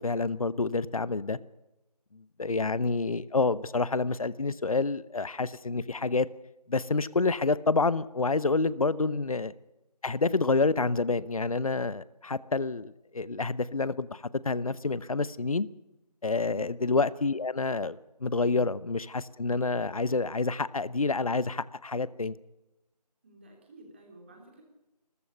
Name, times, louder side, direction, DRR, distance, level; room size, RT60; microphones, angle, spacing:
voice 1, 0.0-1.4 2.1-6.3 6.7-9.5 10.0-15.7 16.2-22.4, left 3 dB, 55° left, 0.8 m, -28 dB
voice 2, 16.4-16.7 23.2-24.6, right 1 dB, 15° right, 3.4 m, -51 dB
28.0 x 14.0 x 6.8 m
figure-of-eight pair, 175°, 21 cm